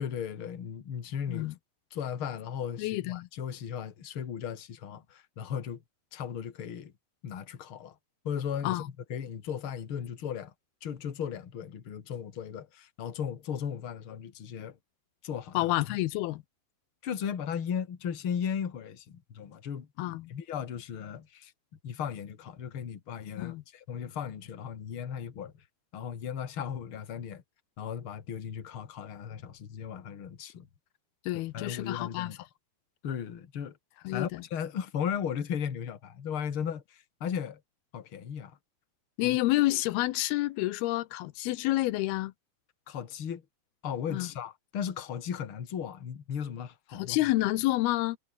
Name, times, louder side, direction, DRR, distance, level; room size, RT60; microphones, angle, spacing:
voice 1, 0.0-1.5 1.9-5.8 6.1-6.9 7.2-7.9 8.2-8.8 9.1-10.5 10.8-14.8 15.2-16.0 17.0-21.5 21.8-25.5 25.9-27.4 27.8-30.7 31.3-32.4 33.0-33.7 34.1-37.6 37.9-38.6 39.2-39.4 42.9-43.4 43.8-47.3, left 8 dB, 40° left, 2.4 m, -36 dB
voice 2, 2.8-3.3 8.6-8.9 15.5-16.4 20.0-20.4 23.4-23.6 31.3-32.4 34.0-34.4 39.2-42.3 44.1-44.3 46.9-48.2, left 18 dB, 90° left, 2.7 m, -29 dB
omnidirectional pair, 4.5 m